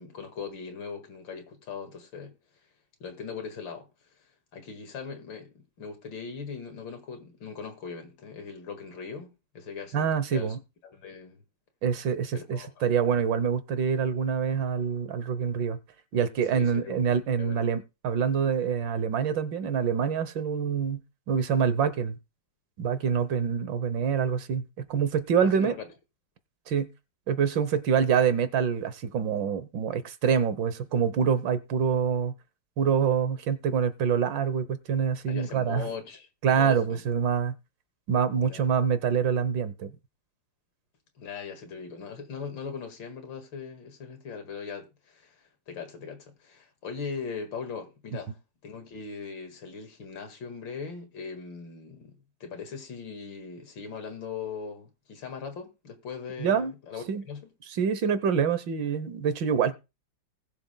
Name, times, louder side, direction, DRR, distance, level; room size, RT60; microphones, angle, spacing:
voice 1, 0.0-2.3 3.0-3.9 4.5-10.6 10.8-11.4 12.3-12.9 16.5-17.0 17.4-17.7 25.4-25.9 35.3-36.3 36.6-37.0 38.4-38.6 41.2-57.5, left 5 dB, 85° left, 2.6 m, -40 dB
voice 2, 9.9-10.6 11.8-15.8 16.1-21.0 21.3-22.2 22.8-25.8 26.7-26.9 27.3-32.3 32.8-35.9 36.4-37.5 38.1-39.9 56.4-56.7 57.1-57.2 57.7-59.7, right 7 dB, 75° right, 1.7 m, -26 dB
20.0 x 7.3 x 2.2 m
omnidirectional pair, 2.0 m